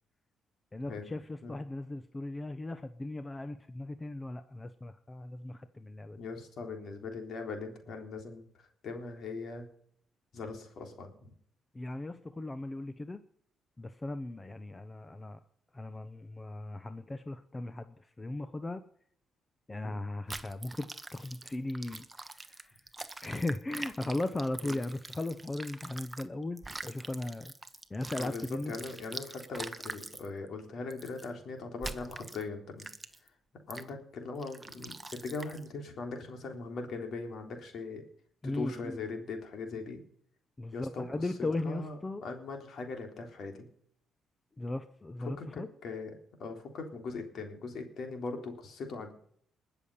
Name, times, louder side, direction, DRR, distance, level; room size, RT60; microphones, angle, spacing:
voice 1, 0.7-6.2 11.7-13.2 13.8-15.4 15.7-18.8 19.7-22.0 22.3-22.8 23.2-27.5 27.9-28.8 38.4-39.0 40.6-42.2 44.6-45.7, left 2 dB, 20° left, 11 dB, 0.9 m, -37 dB
voice 2, 6.2-8.4 8.8-9.7 10.3-11.3 19.8-20.0 24.6-24.8 28.2-32.9 33.7-38.0 38.4-40.0 40.7-41.3 41.6-43.7 45.2-46.1 46.4-49.1, left 3 dB, 65° left, 4 dB, 3.7 m, -40 dB
sound 1, 20.3-26.3 26.6-30.3 30.9-31.3 31.8-32.4 32.8-33.3 33.7-33.9 34.4-35.7, right 2 dB, 15° right, 1.1 m, -44 dB
21.0 x 7.1 x 5.7 m, 0.63 s
cardioid pair, 90°, 0 cm